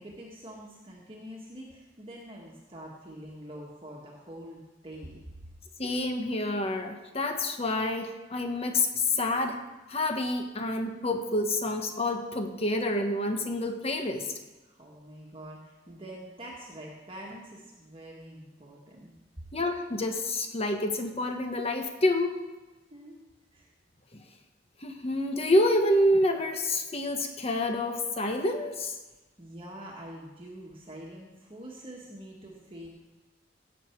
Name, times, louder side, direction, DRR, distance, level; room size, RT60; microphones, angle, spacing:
voice 1, 0.0-5.2 14.6-19.1 22.9-23.2 23.5-23.7 29.4-32.9, right 1 dB, 30° right, -3 dB, 1.6 m, -45 dB
voice 2, 5.8-14.3 19.5-22.4 24.1-24.2 24.8-28.9, left 1 dB, 35° left, 5 dB, 1.3 m, -28 dB
16.5 x 7.7 x 4.6 m, 1.2 s
head